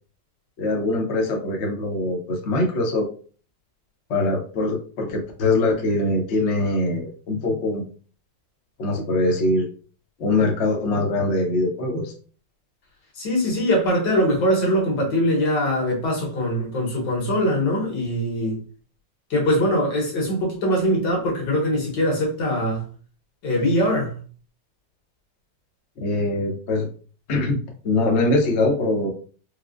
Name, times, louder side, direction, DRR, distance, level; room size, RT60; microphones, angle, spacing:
voice 1, 0.6-3.1 4.1-7.8 8.8-9.7 10.2-12.1 26.0-26.9 27.3-27.6 27.8-29.1, left 2 dB, 55° left, 0.8 m, -22 dB
voice 2, 13.2-18.6 19.3-22.8 23.4-24.2, equal, 75° left, 1.8 m, -22 dB
4.6 x 2.0 x 2.4 m
omnidirectional pair, 2.0 m